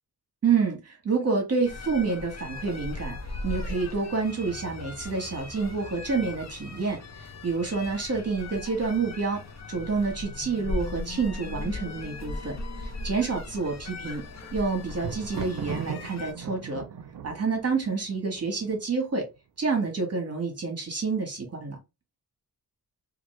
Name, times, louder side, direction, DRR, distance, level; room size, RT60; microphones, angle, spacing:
voice 1, 0.4-3.2 3.4-9.4 9.7-14.2 14.5-16.8 17.2-19.3 19.6-21.8, right 4 dB, 40° right, 1.2 m, -28 dB
sound 1, 1.6-16.3, left 2 dB, 45° left, 0.6 m, -38 dB
Thunder, 14.0-19.1 19.9-20.4 20.6-20.7, right 7 dB, 60° right, 0.6 m, -39 dB
2.9 x 2.5 x 3.0 m
wide cardioid pair, 110°, 38 cm